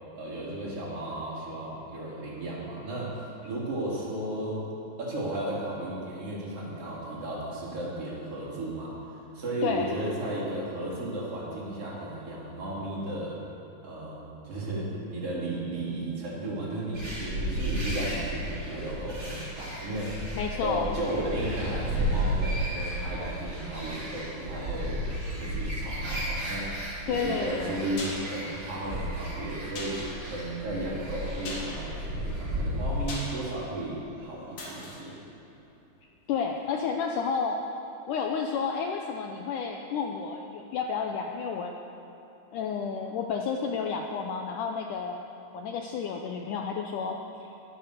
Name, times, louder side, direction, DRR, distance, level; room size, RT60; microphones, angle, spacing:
voice 1, 0.1-4.7 5.0-8.9 9.3-13.4 13.8-20.4 20.6-25.0 25.4-26.7 27.0-30.0 30.3-35.1, right 1 dB, 35° right, -6 dB, 4.0 m, -34 dB
sound 1, 16.9-33.2, equal, 20° right, 3.6 m, -33 dB
voice 2, 20.4-20.9 27.1-27.8 36.3-37.6 38.1-41.7 42.5-45.2 45.5-47.5, left 6 dB, 80° left, 2 dB, 1.8 m, -31 dB
sound 2, 27.9-36.4 36.7-36.8, left 2 dB, 55° left, 4.3 m, -43 dB
22.5 x 8.3 x 6.6 m, 2.9 s
omnidirectional pair, 4.6 m